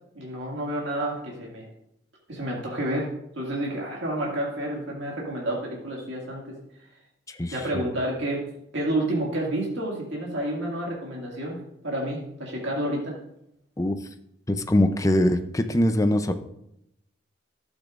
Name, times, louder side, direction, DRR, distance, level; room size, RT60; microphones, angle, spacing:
voice 1, 0.1-1.7 2.3-3.1 3.4-6.6 7.5-8.4 8.7-11.6 11.8-13.2, right 1 dB, 65° right, -3 dB, 2.2 m, -29 dB
voice 2, 7.4-7.8 13.8-14.0 14.5-16.3, left 1 dB, 15° left, 8 dB, 0.5 m, -22 dB
12.0 x 8.1 x 2.5 m, 0.78 s
head